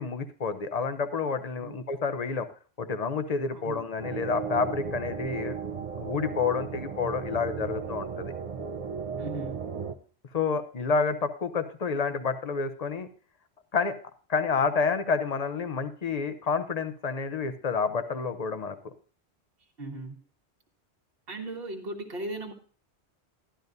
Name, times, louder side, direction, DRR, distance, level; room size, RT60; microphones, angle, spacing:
voice 1, 0.0-2.5 2.8-5.6 6.0-8.3 10.3-13.1 13.7-13.9 14.3-18.9, left 5 dB, 40° left, 10 dB, 0.8 m, -29 dB
sound 1, 4.0-9.9, right 6 dB, 40° right, 0.7 m, -35 dB
voice 2, 9.2-9.6 19.8-20.2 21.3-22.5, right 2 dB, 60° right, 1 dB, 1.5 m, -37 dB
12.0 x 11.5 x 2.6 m, 0.41 s
omnidirectional pair, 1.1 m